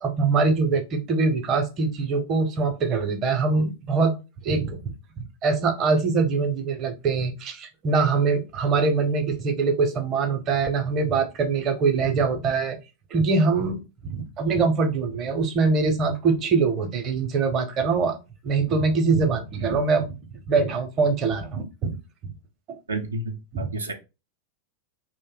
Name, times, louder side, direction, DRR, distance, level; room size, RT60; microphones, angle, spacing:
voice 1, 0.0-4.2 4.4-12.8 13.1-18.2 18.4-20.2 20.5-22.0 22.7-22.8 23.5-23.7, right 4 dB, 30° right, 0.6 m, -23 dB
voice 2, 22.9-23.9, right 2 dB, 75° right, 0.4 m, -31 dB
2.6 x 2.1 x 3.7 m
figure-of-eight pair, 90°, 0 cm